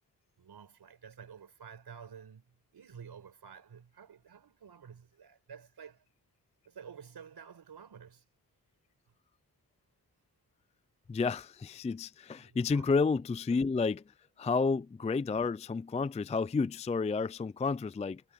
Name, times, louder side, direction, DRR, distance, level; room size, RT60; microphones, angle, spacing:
voice 1, 0.4-6.0 6.6-8.2 12.4-12.8, right 7 dB, 80° right, 5.1 m, -51 dB
voice 2, 11.1-14.0 14.4-18.2, left 4 dB, 20° left, 0.4 m, -30 dB
wide cardioid pair, 90°, 38 cm